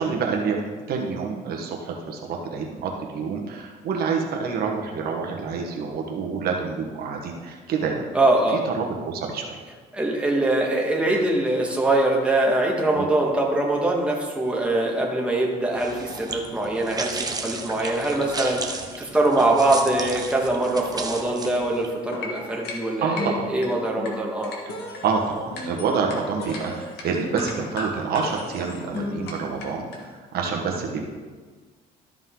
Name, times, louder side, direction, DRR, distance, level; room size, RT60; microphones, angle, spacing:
voice 1, 0.0-8.0 8.5-9.6 12.9-13.1 23.0-23.5 25.0-31.0, right 5 dB, 65° right, 1 dB, 1.3 m, -27 dB
voice 2, 8.1-8.6 9.9-24.5, right 2 dB, 5° right, -2 dB, 1.8 m, -23 dB
sound 1, 15.7-21.9, right 4 dB, 25° right, 0.9 m, -34 dB
sound 2, 21.9-30.0, left 2 dB, 75° left, 1.7 m, -35 dB
13.0 x 5.3 x 3.8 m, 1.4 s
cardioid pair, 110°, 17 cm